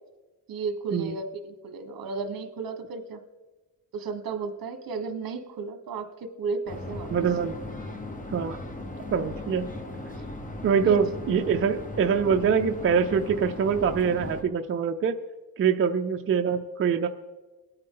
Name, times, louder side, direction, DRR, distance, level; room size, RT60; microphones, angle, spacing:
voice 1, 0.5-3.2 3.9-7.1 10.8-11.0, right 4 dB, 65° right, 8 dB, 1.3 m, -34 dB
sound 1, 6.7-14.4, left 2 dB, 20° left, 1.0 m, -38 dB
voice 2, 7.1-7.5 8.3-8.6 9.1-9.7 10.6-15.2 15.6-17.1, right 6 dB, 35° right, 5 dB, 0.5 m, -24 dB
21.5 x 8.8 x 3.8 m, 1.2 s
wide cardioid pair, 150°, 38 cm